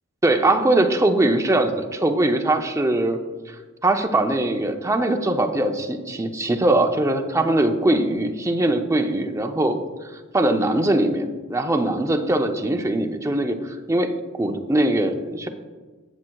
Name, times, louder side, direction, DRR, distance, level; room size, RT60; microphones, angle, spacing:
voice 1, 0.2-3.2 3.5-3.6 3.8-9.8 10.1-15.5, right 1 dB, 15° right, 5 dB, 0.5 m, -21 dB
14.0 x 7.2 x 2.3 m, 1.4 s
head